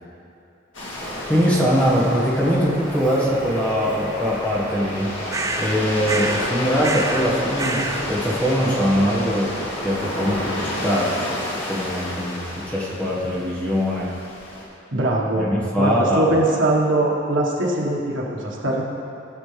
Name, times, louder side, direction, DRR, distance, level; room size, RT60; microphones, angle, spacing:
sound 1, 0.7-14.6, left 1 dB, 80° left, 2.2 m, -32 dB
Bird, 1.0-10.5, equal, 40° left, 2.7 m, -34 dB
voice 1, 1.3-5.1 5.6-9.5 9.8-11.4 11.7-14.1 15.3-16.3, equal, 10° left, -6 dB, 1.7 m, -22 dB
sound 2, 5.3-5.8 6.0-6.5 6.8-7.3 7.6-8.1, right 2 dB, 15° right, 0.4 m, -27 dB
voice 2, 14.9-15.4 15.8-18.8, right 2 dB, 75° right, -2 dB, 1.6 m, -21 dB
17.0 x 7.1 x 3.4 m, 2.7 s
head